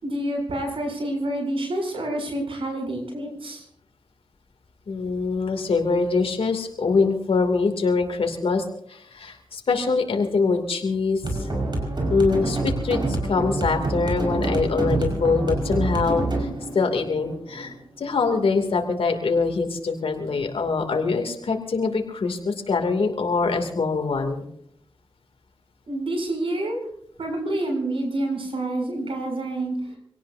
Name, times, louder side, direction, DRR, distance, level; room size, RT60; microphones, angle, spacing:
voice 1, 0.0-3.7 25.9-26.8 27.2-29.8, right 1 dB, 75° right, 1 dB, 7.6 m, -28 dB
voice 2, 4.9-11.2 12.1-16.5 16.7-24.4, left 4 dB, 85° left, 4 dB, 2.8 m, -24 dB
sound 1, 11.2-18.2, right 2 dB, 55° right, 5.4 m, -27 dB
26.0 x 18.0 x 2.8 m, 0.70 s
cardioid pair, 70°, 9 cm